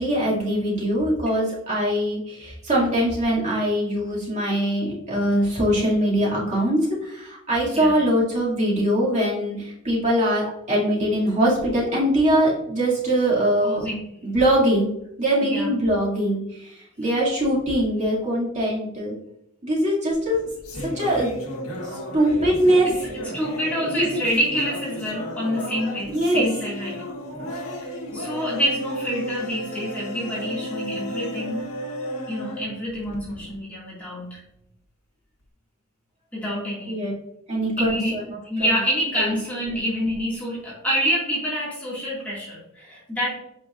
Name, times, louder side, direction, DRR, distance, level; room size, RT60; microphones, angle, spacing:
voice 1, 0.0-13.9 14.2-14.9 15.2-19.1 19.6-20.4 20.8-21.4 21.9-22.9 23.8-24.2 26.1-26.5 36.9-37.1 37.5-38.7 39.2-39.3 39.7-39.8, right 1 dB, 35° right, -6 dB, 2.4 m, -22 dB
voice 2, 13.6-14.1 15.5-15.7 22.8-22.9 23.3-27.0 28.1-31.7 32.3-34.4 36.3-37.0 37.8-38.2 38.4-43.3, equal, 5° left, -8 dB, 2.0 m, -27 dB
sound 1, 20.1-33.6, equal, 75° left, 1.5 m, -33 dB
8.6 x 5.0 x 2.5 m, 0.81 s
head